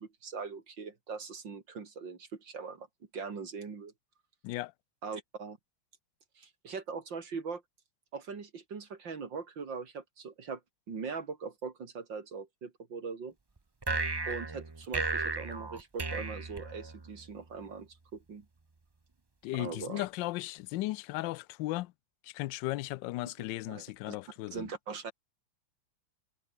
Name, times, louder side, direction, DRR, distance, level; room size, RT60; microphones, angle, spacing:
voice 1, 0.0-2.9 3.1-3.9 5.0-5.6 6.4-7.6 8.1-10.6 10.9-13.3 14.2-18.4 19.5-20.1 23.2-23.3 23.7-24.2 24.5-25.1, right 5 dB, 65° right, 3.3 m, -41 dB
sound 1, 13.8-17.2, right 3 dB, 25° right, 0.5 m, -35 dB
voice 2, 19.4-21.9 22.2-24.7, left 18 dB, 75° left, 1.2 m, -36 dB
omnidirectional pair, 2.2 m